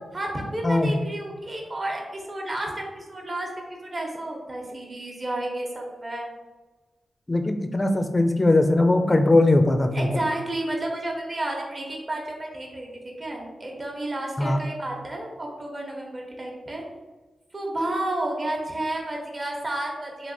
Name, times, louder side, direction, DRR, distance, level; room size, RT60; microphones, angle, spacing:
voice 1, 0.1-3.5 3.9-6.3 9.9-16.8 17.5-20.3, right 1 dB, 40° right, 0 dB, 0.8 m, -31 dB
voice 2, 7.3-10.1 14.4-14.6, left 2 dB, 30° left, 6 dB, 0.4 m, -20 dB
3.3 x 2.7 x 2.6 m, 1.2 s
cardioid pair, 55°, 0 cm